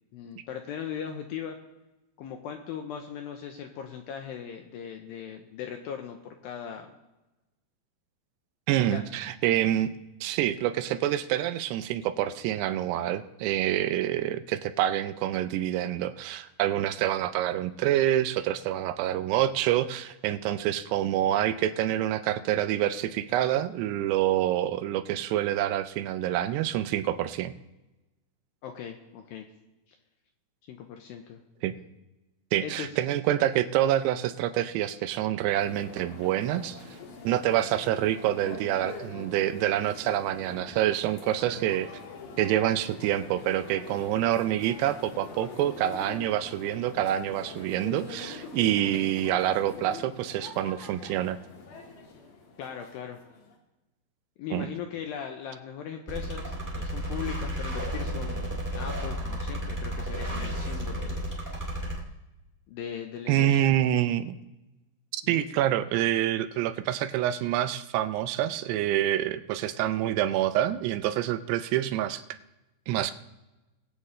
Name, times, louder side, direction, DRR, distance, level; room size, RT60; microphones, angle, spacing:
voice 1, 0.1-1.6 2.2-6.9 8.8-9.0 14.3-14.4 28.6-29.5 29.9-30.0 30.7-31.4 32.6-32.9 52.6-53.2 54.4-61.3 62.7-63.7 65.2-65.5, left 8 dB, 80° left, 4 dB, 2.2 m, -39 dB
voice 2, 8.7-9.9 10.2-27.5 31.6-31.7 32.5-36.8 37.2-41.9 42.4-51.4 54.5-54.7 63.3-64.3 65.1-72.2 72.9-73.1, right 12 dB, 85° right, 10 dB, 2.7 m, -27 dB
sound 1, 35.6-53.6, left 3 dB, 60° left, 3.2 m, -44 dB
sound 2, 56.1-62.0, equal, 10° right, 1.2 m, -32 dB
21.0 x 8.2 x 3.2 m, 1.0 s
omnidirectional pair, 4.9 m